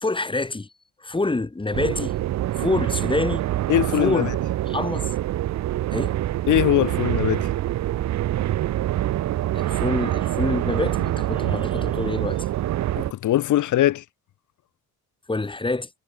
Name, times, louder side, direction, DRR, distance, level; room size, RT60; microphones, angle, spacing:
voice 1, 0.0-0.7 1.0-2.2 2.6-3.5 4.0-4.3 4.7-5.1 5.9-6.2 9.5-12.5 15.3-15.9, left 3 dB, 15° left, 2.5 m, -26 dB
sound 1, 1.7-13.1, right 14 dB, 65° right, 0.7 m, -25 dB
voice 2, 3.7-4.3 6.5-7.5 12.9-14.0, left 13 dB, 80° left, 2.6 m, -21 dB
cardioid pair, 90°, 30 cm